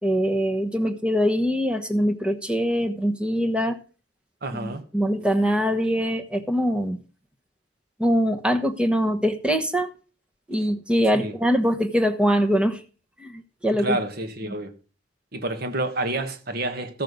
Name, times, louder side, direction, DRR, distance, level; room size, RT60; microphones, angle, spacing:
voice 1, 0.0-3.8 4.5-7.0 8.0-9.9 10.5-12.8 13.2-14.0 14.5-14.6, equal, 5° right, 1.0 m, -23 dB
voice 2, 4.4-4.8 11.1-11.3 13.8-14.7 15.3-17.0, right 2 dB, 55° right, 1.4 m, -29 dB
14.0 x 6.4 x 5.4 m
head